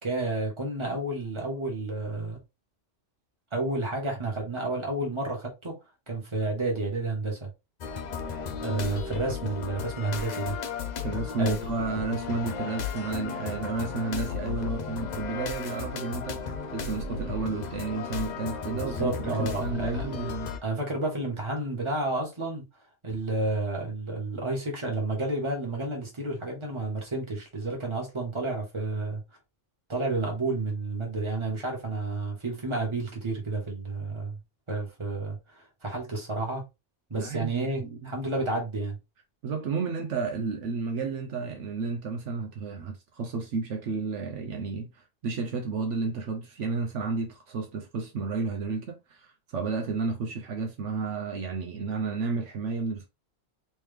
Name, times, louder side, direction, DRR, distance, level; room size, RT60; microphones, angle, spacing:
voice 1, 0.0-2.4 3.5-5.7 6.1-7.5 8.6-10.5 11.4-11.6 18.7-20.1 20.6-22.6 23.0-29.2 29.9-34.4 34.7-36.6 37.1-38.9, right 2 dB, 25° right, 1.4 m, -31 dB
sound 1, 7.8-20.6, left 6 dB, 55° left, 0.5 m, -34 dB
voice 2, 11.0-16.4 16.7-20.5 37.1-38.1 39.4-53.1, right 4 dB, 70° right, 1.0 m, -32 dB
3.3 x 3.1 x 3.3 m
omnidirectional pair, 1.3 m